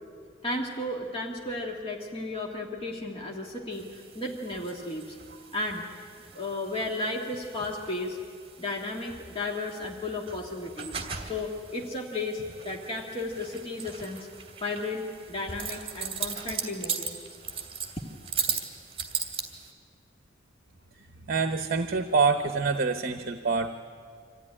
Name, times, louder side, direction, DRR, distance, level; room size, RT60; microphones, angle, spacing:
voice 1, 0.4-5.2 5.5-5.8 6.3-8.2 8.6-14.3 14.6-17.2, left 2 dB, 30° left, -1 dB, 1.7 m, -34 dB
sound 1, 3.7-19.7, right 6 dB, 30° right, 2.5 m, -38 dB
voice 2, 21.3-23.7, right 4 dB, 50° right, 7 dB, 0.9 m, -26 dB
25.5 x 15.0 x 9.8 m, 2.2 s
head